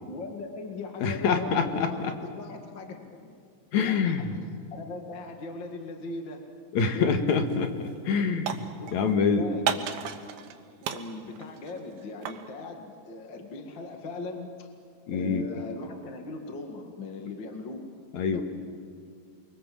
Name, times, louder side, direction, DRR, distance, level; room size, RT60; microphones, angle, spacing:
voice 1, 0.0-3.4 3.8-4.2 4.7-6.5 6.9-7.2 8.8-10.0 10.9-14.7 15.1-17.9 18.3-18.4, left 3 dB, 40° left, 4 dB, 2.1 m, -39 dB
voice 2, 1.0-2.1 3.7-4.4 6.7-8.6 8.9-9.5 15.1-15.5 18.1-18.4, left 5 dB, 60° left, 6 dB, 2.7 m, -26 dB
sound 1, 7.3-7.6 7.9-9.1 9.7-10.6 10.8-12.5, right 9 dB, 90° right, 3.0 m, -34 dB
29.0 x 23.0 x 7.7 m, 2.3 s
omnidirectional pair, 4.0 m